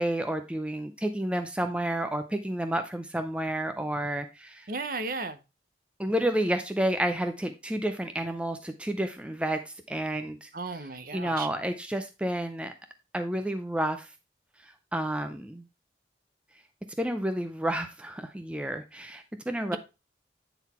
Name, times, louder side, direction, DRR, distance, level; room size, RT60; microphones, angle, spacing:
voice 1, 0.0-4.7 6.0-12.7 13.1-14.1 14.6-15.6 17.0-19.8, right 1 dB, 5° right, 0.5 m, -30 dB
voice 2, 4.7-5.4 10.5-11.5 19.7-19.8, right 3 dB, 50° right, 0.7 m, -34 dB
9.1 x 4.0 x 4.2 m
head